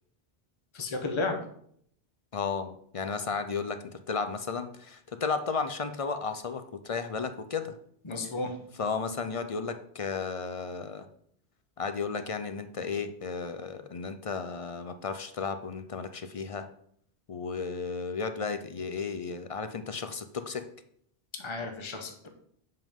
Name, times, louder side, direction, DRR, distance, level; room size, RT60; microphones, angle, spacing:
voice 1, 0.7-1.4 8.0-8.6 21.4-22.3, left 3 dB, 30° left, 4 dB, 0.9 m, -33 dB
voice 2, 2.3-3.8 4.1-7.8 8.8-11.1 11.8-16.7 17.3-20.7, left 5 dB, 45° left, 9 dB, 0.5 m, -34 dB
7.7 x 5.4 x 3.6 m, 0.66 s
omnidirectional pair, 1.1 m